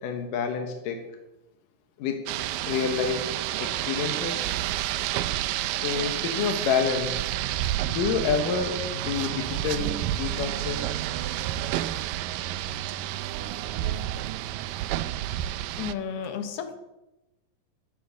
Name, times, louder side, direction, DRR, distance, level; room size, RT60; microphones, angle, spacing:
voice 1, 0.0-1.0 2.0-2.3 2.7-3.3 3.6-4.5 5.7-7.3 7.9-11.0, left 6 dB, 75° left, 4 dB, 2.7 m, -28 dB
Rain, 2.3-15.9, right 13 dB, 80° right, 2.2 m, -30 dB
voice 2, 15.8-16.8, left 7 dB, 55° left, 7 dB, 1.7 m, -33 dB
10.5 x 10.5 x 6.8 m, 0.97 s
omnidirectional pair, 4.0 m